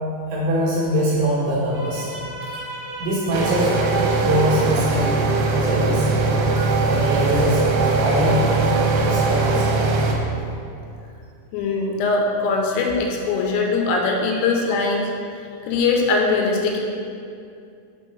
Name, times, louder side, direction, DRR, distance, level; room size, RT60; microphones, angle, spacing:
voice 1, 0.3-5.1 5.6-6.3 6.9-7.6 8.0-8.7 9.0-9.6 14.7-14.8, equal, 70° right, -7 dB, 2.8 m, -23 dB
sound 1, 3.3-10.2, right 3 dB, 90° right, 3.3 m, -20 dB
voice 2, 11.5-15.4 15.6-16.8, left 3 dB, 85° left, 1 dB, 3.4 m, -21 dB
7.4 x 3.8 x 5.4 m, 2.5 s
omnidirectional pair, 5.8 m